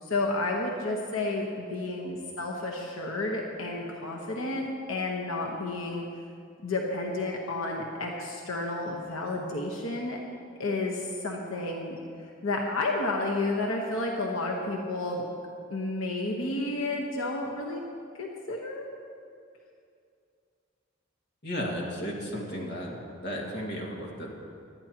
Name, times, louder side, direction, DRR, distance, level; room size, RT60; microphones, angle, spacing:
voice 1, 0.0-6.0 6.6-10.2 10.6-12.0 12.4-15.2 15.7-17.8 18.2-18.9, left 2 dB, 85° left, 0 dB, 1.2 m, -31 dB
voice 2, 21.4-24.3, equal, 55° left, -2 dB, 2.0 m, -34 dB
19.0 x 12.0 x 2.9 m, 2.4 s
head